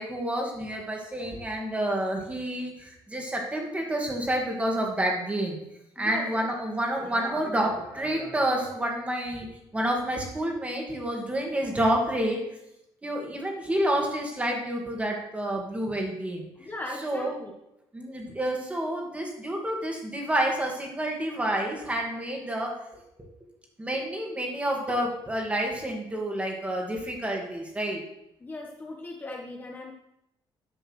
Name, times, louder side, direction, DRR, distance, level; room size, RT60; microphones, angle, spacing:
voice 1, 0.0-5.6 6.0-12.4 13.0-16.5 17.0-17.3 17.9-23.0 23.8-28.0, right 1 dB, 15° right, 0 dB, 2.3 m, -29 dB
voice 2, 6.0-6.5 7.0-7.2 16.6-17.5 28.4-29.9, left 2 dB, 20° left, 0 dB, 1.1 m, -38 dB
11.5 x 5.4 x 6.4 m, 0.84 s
cardioid pair, 145°, 10 cm